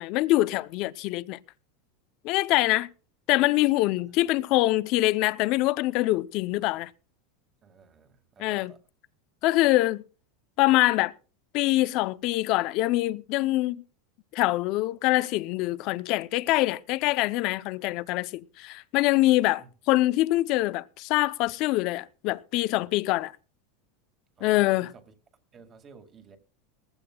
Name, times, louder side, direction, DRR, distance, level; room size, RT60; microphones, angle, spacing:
voice 1, 0.0-1.4 2.2-2.9 3.3-6.9 8.4-8.7 9.4-10.0 10.6-11.1 11.5-13.8 14.3-23.3 24.4-24.9, left 18 dB, 50° left, 0.5 m, -24 dB
voice 2, 4.0-4.3 7.6-8.8 19.6-19.7 24.4-25.1 25.5-26.4, right 6 dB, 25° right, 2.1 m, -52 dB
19.5 x 15.0 x 2.3 m
supercardioid pair, 145°, 0 cm